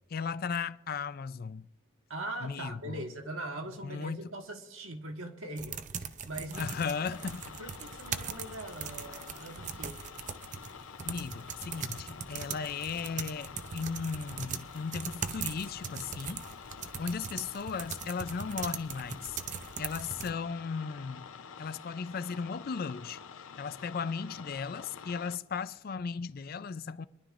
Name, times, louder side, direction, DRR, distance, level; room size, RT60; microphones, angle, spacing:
voice 1, 0.1-1.7 2.4-3.0 3.8-4.2 6.6-7.4 11.1-16.5 17.0-19.4 19.8-21.3 21.6-23.2 23.6-27.1, left 5 dB, 45° left, 0.4 m, -36 dB
voice 2, 2.1-6.8 7.1-7.2 7.5-10.0, right 1 dB, 85° right, 1.5 m, -41 dB
sound 1, 5.6-20.3, right 7 dB, 35° right, 0.5 m, -41 dB
sound 2, 6.5-25.4, left 6 dB, 85° left, 0.7 m, -48 dB
23.0 x 11.5 x 2.5 m
head